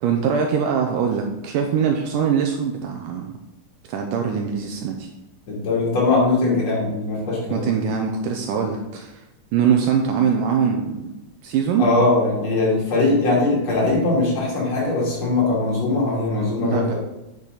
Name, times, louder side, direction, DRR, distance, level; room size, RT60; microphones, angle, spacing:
voice 1, 0.0-3.3 3.9-5.1 7.5-9.1 9.5-11.1 11.4-11.8 16.6-16.9, right 7 dB, 80° right, 3 dB, 2.2 m, -22 dB
voice 2, 5.5-7.7 11.8-16.9, left 2 dB, 50° left, -5 dB, 3.7 m, -20 dB
8.6 x 6.6 x 4.0 m, 0.96 s
omnidirectional pair, 4.0 m